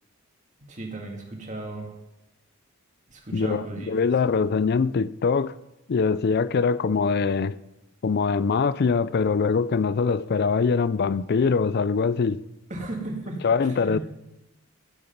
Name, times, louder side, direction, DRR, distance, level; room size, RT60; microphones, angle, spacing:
voice 1, 0.7-1.9 3.1-3.9 12.7-13.5 13.8-14.0, right 2 dB, 35° right, 2.0 m, -35 dB
voice 2, 3.3-5.5 5.9-7.6 8.0-12.4 13.4-14.0, left 5 dB, 50° left, 0.4 m, -23 dB
15.5 x 6.9 x 5.3 m
head